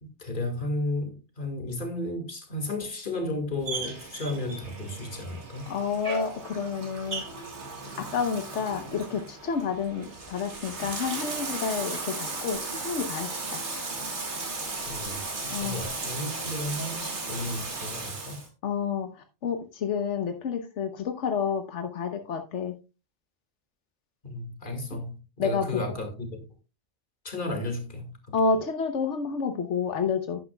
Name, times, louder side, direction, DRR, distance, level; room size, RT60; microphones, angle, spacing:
voice 1, 0.0-5.7 14.9-18.4 24.2-26.5 27.2-28.3, left 1 dB, 45° left, 2.2 m, -34 dB
Bathtub (filling or washing), 3.6-18.5, right 3 dB, 75° right, 2.3 m, -36 dB
voice 2, 5.7-7.2 8.0-13.6 15.5-15.8 18.6-22.7 25.4-25.8 28.3-30.4, left 5 dB, 85° left, 1.2 m, -29 dB
11.5 x 9.9 x 2.3 m
omnidirectional pair, 1.2 m